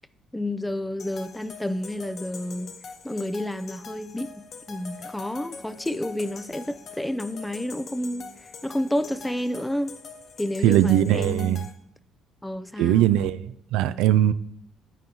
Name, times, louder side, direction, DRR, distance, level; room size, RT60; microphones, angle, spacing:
voice 1, 0.3-2.7 3.0-9.9 10.4-11.6 12.4-13.1, left 1 dB, 5° left, 0.4 m, -30 dB
sound 1, 1.0-11.7, left 5 dB, 50° left, 0.8 m, -43 dB
voice 2, 10.6-11.6 12.8-13.4 13.7-14.3, right 12 dB, 85° right, 0.3 m, -20 dB
9.1 x 7.8 x 2.8 m
cardioid pair, 105°, 0 cm